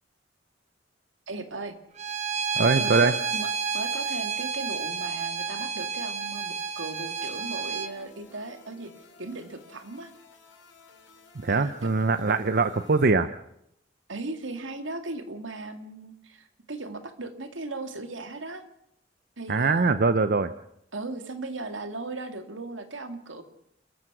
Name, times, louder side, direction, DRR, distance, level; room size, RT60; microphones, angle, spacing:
voice 1, 1.3-1.8 2.6-8.9 9.2-10.1 11.5-11.9 12.2-12.4 14.1-18.6 19.4-20.2 20.9-23.4, right 3 dB, 85° right, 7 dB, 2.3 m, -37 dB
Bowed string instrument, 2.0-7.9, right 5 dB, 35° right, 1.2 m, -30 dB
voice 2, 2.6-3.1 11.4-13.3 19.5-20.5, right 4 dB, 55° right, 11 dB, 0.7 m, -22 dB
sound 1, 7.2-13.1, left 3 dB, 85° left, 4.5 m, -53 dB
29.5 x 14.5 x 6.2 m, 0.76 s
head